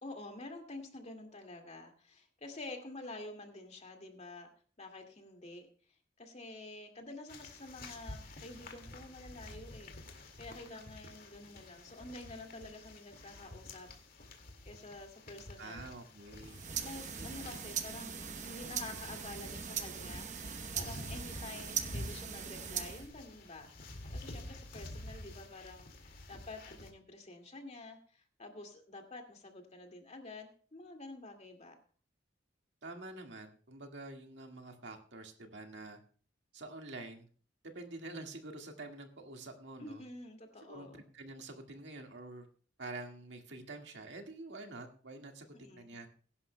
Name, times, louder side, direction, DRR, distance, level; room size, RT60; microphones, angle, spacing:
voice 1, 0.0-4.5 4.8-5.7 6.2-13.9 14.7-15.9 16.8-23.7 24.1-31.7 39.8-41.0 45.5-46.1, left 2 dB, 40° left, 4 dB, 2.2 m, -49 dB
sound 1, 7.3-26.9, left 1 dB, 55° left, 2.1 m, -49 dB
voice 2, 15.6-16.6 17.2-17.6 32.8-36.0 36.5-37.3 37.6-40.0 40.6-42.5 42.8-46.1, right 2 dB, 75° right, 3 dB, 1.8 m, -47 dB
sound 2, 16.4-23.1, right 7 dB, 45° right, 0.9 m, -41 dB
21.5 x 11.0 x 2.2 m, 0.42 s
head